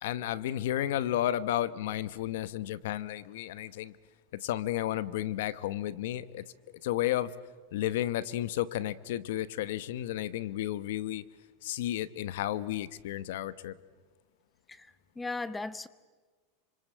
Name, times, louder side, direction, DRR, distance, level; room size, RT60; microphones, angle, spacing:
voice 1, 0.0-4.0 4.3-6.4 6.8-7.3 7.7-11.2 11.6-13.8, left 13 dB, 70° left, 16 dB, 1.0 m, -32 dB
voice 2, 14.7-15.9, left 3 dB, 10° left, 16 dB, 0.7 m, -37 dB
26.0 x 25.0 x 7.7 m, 1.4 s
supercardioid pair, 165°, 0 cm